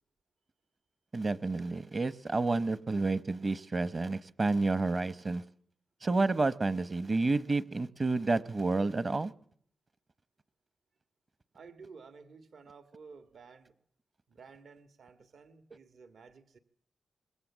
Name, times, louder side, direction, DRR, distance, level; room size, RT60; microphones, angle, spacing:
voice 1, 1.1-5.4 6.0-9.3, right 3 dB, 35° right, 1.0 m, -30 dB
voice 2, 11.5-13.7 14.3-16.6, right 5 dB, 70° right, 1.9 m, -53 dB
26.0 x 22.0 x 7.5 m
wide cardioid pair, 135°, 0 cm